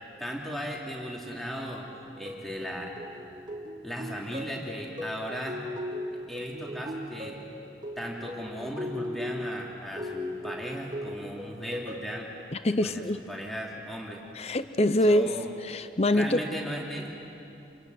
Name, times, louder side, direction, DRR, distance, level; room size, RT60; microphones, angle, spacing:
voice 1, 0.2-1.9 2.2-2.9 3.8-5.6 6.3-7.4 8.0-12.3 12.8-14.2 15.1-15.5 16.1-17.1, equal, ahead, -2 dB, 3.1 m, -36 dB
sound 1, 2.2-12.2, left 1 dB, 25° right, 2.1 m, -38 dB
voice 2, 12.5-13.2 14.3-16.4, left 1 dB, 35° left, 11 dB, 0.7 m, -25 dB
28.0 x 22.0 x 9.6 m, 2.9 s
head